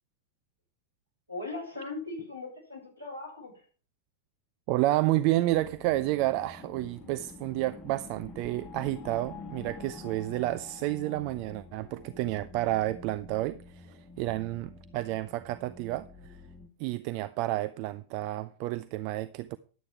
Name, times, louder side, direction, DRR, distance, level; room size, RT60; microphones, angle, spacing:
voice 1, 1.3-3.6, left 3 dB, 90° right, 6.9 m, -39 dB
voice 2, 4.7-16.4 16.8-19.6, right 16 dB, 45° right, 0.5 m, -30 dB
sound 1, 5.5-16.7, left 4 dB, 25° left, 1.3 m, -47 dB
11.5 x 8.6 x 4.7 m
figure-of-eight pair, 90°, 0 cm